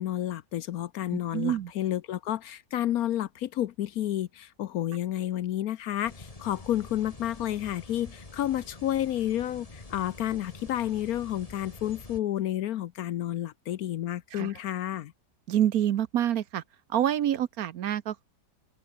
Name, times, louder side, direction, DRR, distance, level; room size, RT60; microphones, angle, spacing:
voice 1, 0.0-15.1, left 12 dB, 65° left, 1.1 m, -30 dB
voice 2, 1.1-1.7 14.3-14.5 15.5-16.6 16.9-18.2, right 11 dB, 65° right, 1.2 m, -27 dB
sound 1, 6.0-12.2, left 2 dB, 20° left, 2.0 m, -47 dB
open air
omnidirectional pair, 1.8 m